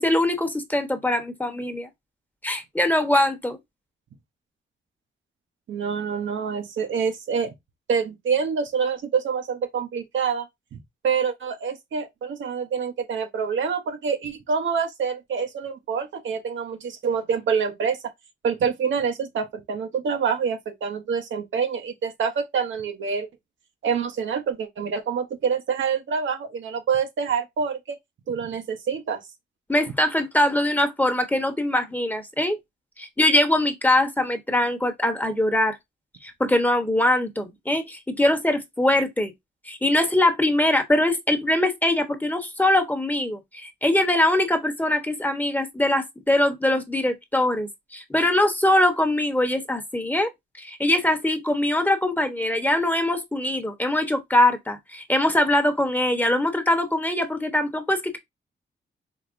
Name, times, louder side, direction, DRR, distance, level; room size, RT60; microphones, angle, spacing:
voice 1, 0.0-1.9 2.4-3.6 29.7-32.6 33.0-35.8 36.2-39.3 39.7-50.3 50.5-58.2, left 1 dB, 10° left, 0.9 m, -22 dB
voice 2, 5.7-7.5 7.9-18.0 18.4-23.3 23.8-28.0 28.3-29.2, right 6 dB, 80° right, 0.9 m, -26 dB
4.8 x 3.3 x 2.5 m
cardioid pair, 90°, 19 cm